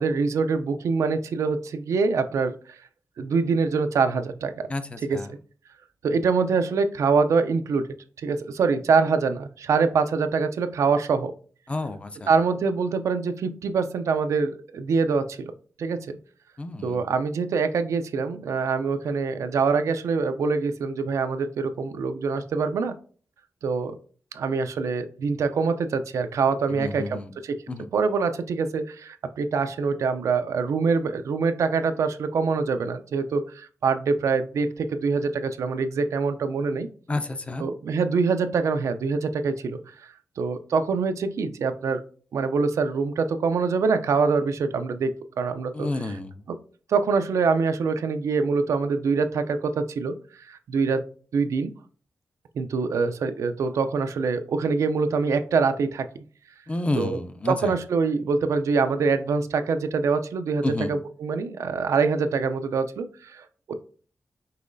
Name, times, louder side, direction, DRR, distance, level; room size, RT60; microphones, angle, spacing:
voice 1, 0.0-2.5 3.2-4.7 5.0-5.4 6.0-7.9 8.2-11.3 12.3-15.5 15.8-16.2 16.8-23.0 23.6-23.9 24.3-27.6 27.9-36.9 37.6-39.8 40.4-42.0 42.3-46.2 46.5-46.6 46.9-50.2 50.5-51.0 51.3-51.7 52.6-56.2 57.0-57.2 57.5-63.7, right 4 dB, 85° right, 9 dB, 0.4 m, -24 dB
voice 2, 4.7-5.3 11.7-12.3 16.6-17.0 26.8-27.3 27.7-27.9 37.1-37.7 45.7-46.4 56.7-57.7 60.6-60.9, left 2 dB, 25° left, 9 dB, 0.4 m, -30 dB
5.5 x 3.1 x 2.6 m, 0.41 s
wide cardioid pair, 125°, 5 cm